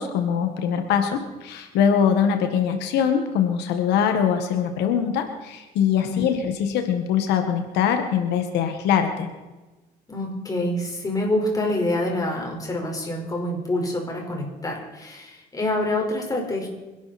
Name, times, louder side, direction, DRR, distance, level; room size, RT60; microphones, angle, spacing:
voice 1, 0.0-9.3, left 8 dB, 85° left, 6 dB, 1.8 m, -22 dB
voice 2, 10.1-16.7, left 1 dB, 20° left, 0 dB, 5.0 m, -26 dB
26.0 x 12.0 x 4.4 m, 1.2 s
cardioid pair, 110°, 17 cm